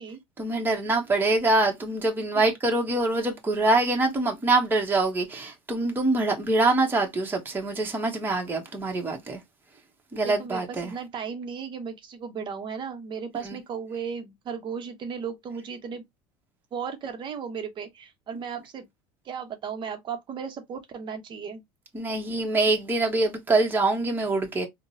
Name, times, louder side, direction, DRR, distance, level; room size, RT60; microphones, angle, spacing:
voice 1, 0.4-9.4 10.1-10.9 13.4-13.6 21.9-24.7, right 2 dB, 15° right, 1.0 m, -24 dB
voice 2, 10.2-16.0 16.7-18.9 19.2-21.6, right 6 dB, 40° right, 0.8 m, -35 dB
3.7 x 2.2 x 2.6 m
supercardioid pair, 95°, 12 cm